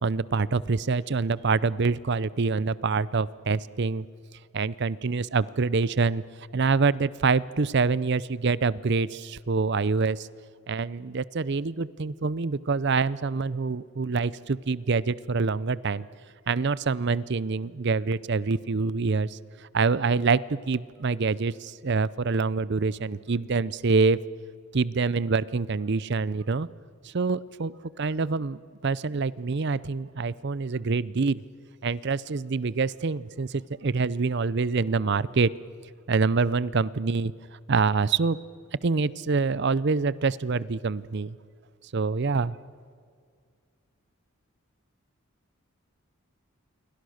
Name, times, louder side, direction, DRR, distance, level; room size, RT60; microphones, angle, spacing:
voice 1, 0.0-4.1 4.5-6.2 6.5-10.3 10.7-16.1 16.5-19.4 19.7-24.2 24.7-26.7 27.0-27.7 28.0-31.4 31.8-35.5 36.1-37.3 37.7-38.4 38.8-41.4 41.9-42.5, right 4 dB, 50° right, 20 dB, 0.6 m, -26 dB
28.0 x 23.5 x 6.5 m, 2.1 s
head